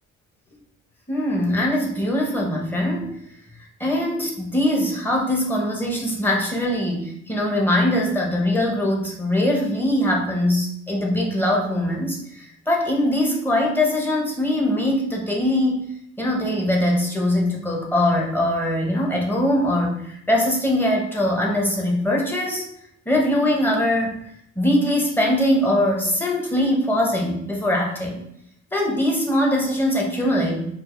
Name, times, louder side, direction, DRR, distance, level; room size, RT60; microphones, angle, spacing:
voice 1, 1.1-3.2 3.8-15.9 16.2-22.7 23.1-24.2 24.6-28.2 28.7-30.8, left 1 dB, 5° left, -1 dB, 0.8 m, -22 dB
4.5 x 2.4 x 3.0 m, 0.73 s
cardioid pair, 135°, 30 cm